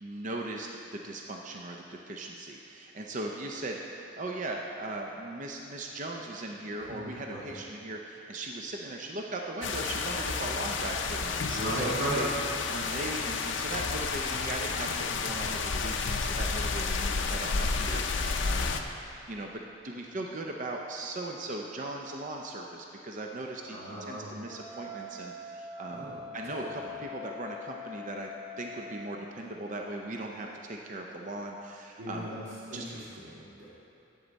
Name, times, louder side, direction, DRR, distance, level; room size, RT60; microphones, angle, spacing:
voice 1, 0.0-11.9 12.7-28.3 28.6-32.3 32.7-32.8, right 2 dB, 40° right, 1 dB, 0.5 m, -39 dB
voice 2, 6.8-7.4 11.5-12.3 12.7-12.8 23.7-24.3 25.9-26.2 26.6-27.0 32.0-32.4 32.7-33.7, right 1 dB, 70° right, -8 dB, 1.6 m, -36 dB
sound 1, 9.6-18.8, left 4 dB, 65° left, 0.5 m, -31 dB
Wind instrument woodwind instrument, 24.5-29.2, left 3 dB, 15° right, 1.3 m, -43 dB
11.0 x 8.1 x 4.0 m, 2.9 s
head